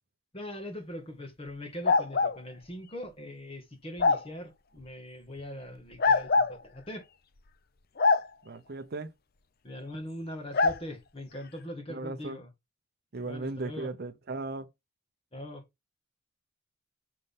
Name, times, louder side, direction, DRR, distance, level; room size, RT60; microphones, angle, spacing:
voice 1, 0.3-7.0 9.6-12.5 13.2-13.9 15.3-15.6, left 1 dB, 25° left, 1.8 m, -41 dB
sound 1, 1.8-2.4 4.0-4.2 6.0-6.6 8.0-8.2 10.5-10.8, left 4 dB, 45° left, 0.6 m, -23 dB
voice 2, 8.4-9.1 11.9-12.4 13.1-14.7, right 3 dB, 45° right, 0.6 m, -37 dB
6.5 x 5.9 x 3.6 m
head